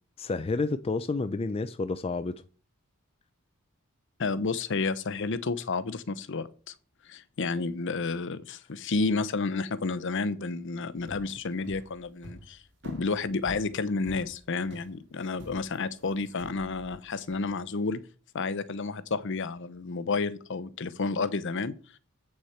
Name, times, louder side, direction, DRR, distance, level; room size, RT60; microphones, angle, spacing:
voice 1, 0.2-2.4, left 3 dB, 25° left, 0.4 m, -30 dB
voice 2, 4.2-6.7 7.0-18.0 18.3-21.7, left 4 dB, 60° left, 0.7 m, -31 dB
sound 1, 10.9-17.5, equal, 55° right, 2.4 m, -48 dB
8.1 x 6.4 x 4.4 m
head